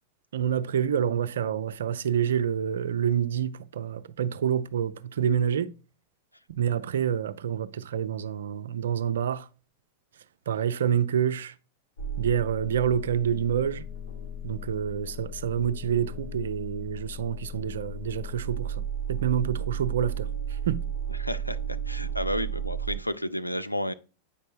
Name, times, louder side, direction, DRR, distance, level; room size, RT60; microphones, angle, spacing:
voice 1, 0.3-5.7 6.5-9.5 10.5-11.6 12.2-13.9 14.4-20.8, right 8 dB, 65° right, 0.4 m, -27 dB
sound 1, 12.0-23.0, right 5 dB, 65° left, 1.3 m, -34 dB
voice 2, 21.2-23.9, equal, 90° left, 0.4 m, -31 dB
8.4 x 5.3 x 2.4 m
figure-of-eight pair, 90°, 0 cm